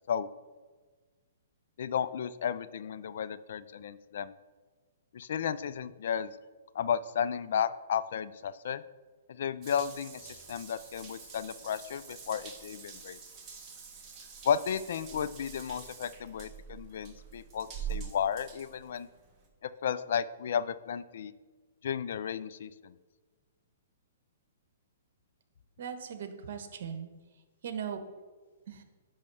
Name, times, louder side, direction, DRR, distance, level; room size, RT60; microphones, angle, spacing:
voice 1, 1.8-4.3 5.1-6.4 6.7-8.8 9.4-13.2 14.4-19.1 19.6-21.3 21.8-22.9, left 8 dB, 65° left, 15 dB, 0.4 m, -33 dB
Water tap faucet / Bathtub (filling or washing) / Drip, 9.6-19.5, right 7 dB, 20° right, 1.7 m, -45 dB
voice 2, 25.8-27.1 27.6-28.0 28.7-28.8, right 7 dB, 60° right, 7 dB, 1.3 m, -38 dB
10.5 x 3.5 x 6.9 m, 1.4 s
hypercardioid pair, 155°, 0 cm